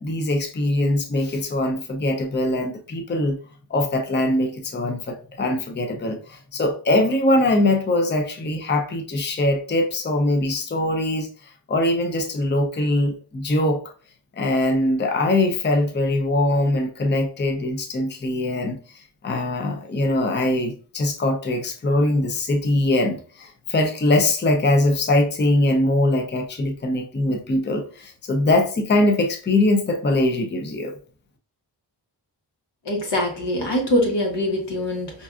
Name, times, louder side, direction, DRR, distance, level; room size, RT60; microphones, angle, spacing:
voice 1, 0.0-3.4 3.7-11.3 11.7-13.8 14.4-30.9, left 1 dB, 25° left, 0.6 m, -22 dB
voice 2, 32.8-35.2, left 1 dB, 80° left, 1.2 m, -23 dB
5.3 x 2.5 x 2.4 m
wide cardioid pair, 95°, 41 cm